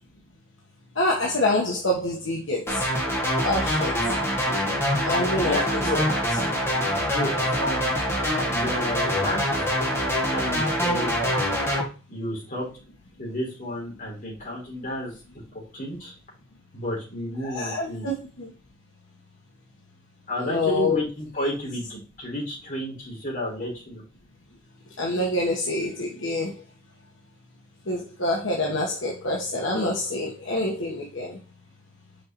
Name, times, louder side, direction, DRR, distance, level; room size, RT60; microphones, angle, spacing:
voice 1, 1.0-2.8 3.4-3.9 5.0-5.8 17.4-18.5 20.4-21.0 25.0-26.5 27.9-31.4, left 1 dB, 65° left, -1 dB, 1.3 m, -26 dB
sound 1, 2.7-11.8, equal, 10° left, 1.7 m, -25 dB
voice 2, 5.4-6.0 7.1-7.9 8.4-9.5 10.3-11.2 12.1-12.7 13.2-15.1 15.5-16.1 16.7-18.1 20.3-24.0, left 1 dB, 40° left, -3 dB, 4.0 m, -31 dB
6.3 x 5.5 x 3.0 m, 0.34 s
head